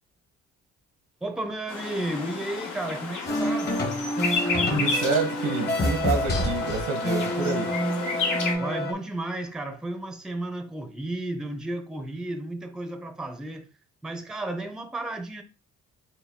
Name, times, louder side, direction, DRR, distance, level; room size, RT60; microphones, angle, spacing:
voice 1, 1.2-3.7 8.6-13.7 14.0-15.4, right 1 dB, ahead, 0.5 m, -33 dB
sound 1, 1.7-8.5, left 4 dB, 85° left, 1.1 m, -32 dB
sound 2, 3.3-8.9, equal, 35° left, 0.9 m, -27 dB
voice 2, 4.7-7.7, right 4 dB, 90° right, 1.0 m, -28 dB
4.4 x 2.1 x 3.6 m
cardioid pair, 90°, 30 cm